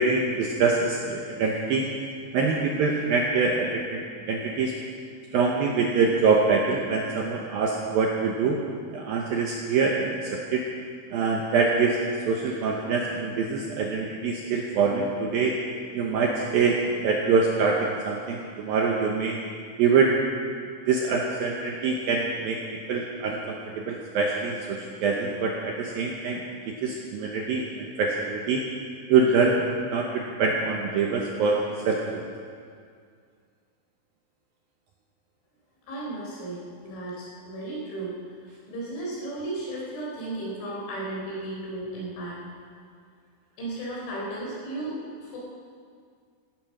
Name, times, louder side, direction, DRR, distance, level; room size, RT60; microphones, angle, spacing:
voice 1, 0.0-1.9 2.3-4.0 4.3-4.7 5.3-8.6 8.9-10.6 11.1-12.0 12.3-15.5 15.9-16.8 17.0-19.4 19.8-20.1 20.9-22.6 22.9-26.4 26.8-28.6 29.1-29.6 29.9-32.2, right 4 dB, 75° right, 0 dB, 2.2 m, -24 dB
voice 2, 35.9-38.2 38.7-42.4 43.6-45.4, right 2 dB, 75° left, -5 dB, 6.5 m, -34 dB
16.0 x 12.0 x 6.1 m, 2.1 s
omnidirectional pair, 5.4 m